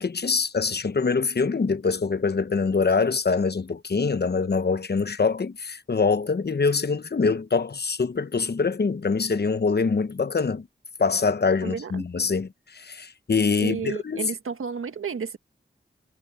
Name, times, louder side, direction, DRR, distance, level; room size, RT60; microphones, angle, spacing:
voice 1, 0.0-10.7 11.0-14.3, left 4 dB, 50° left, 1.1 m, -24 dB
voice 2, 11.6-12.1 13.6-15.4, right 6 dB, 90° right, 1.8 m, -32 dB
cardioid pair, 40°, 21 cm